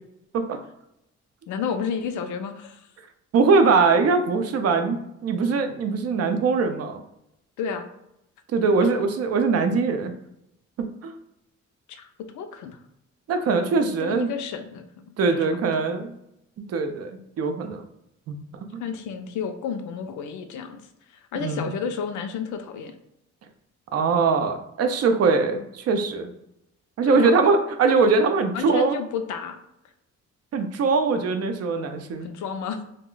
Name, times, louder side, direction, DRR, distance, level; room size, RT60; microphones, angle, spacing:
voice 1, 1.5-2.9 7.6-7.9 11.9-12.1 12.3-12.8 14.0-15.2 18.8-20.8 21.3-22.9 27.0-27.3 28.5-29.6 32.2-32.8, left 6 dB, 75° left, 7 dB, 0.5 m, -31 dB
voice 2, 3.3-7.0 8.5-10.1 10.8-11.1 13.3-14.3 15.2-16.1 16.7-17.8 18.3-18.4 18.7-18.8 21.4-21.6 23.9-26.3 27.0-29.0 30.5-32.3, right 4 dB, 55° right, 7 dB, 0.5 m, -22 dB
2.3 x 2.1 x 3.7 m, 0.81 s
cardioid pair, 90°, 30 cm